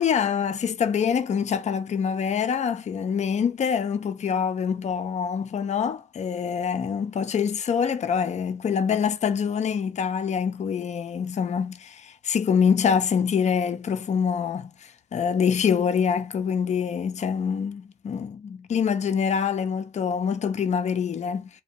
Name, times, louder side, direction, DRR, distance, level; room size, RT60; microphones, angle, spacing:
voice 1, 0.0-21.5, left 7 dB, 35° left, 0.4 m, -25 dB
2.5 x 2.2 x 2.8 m
cardioid pair, 90°, 20 cm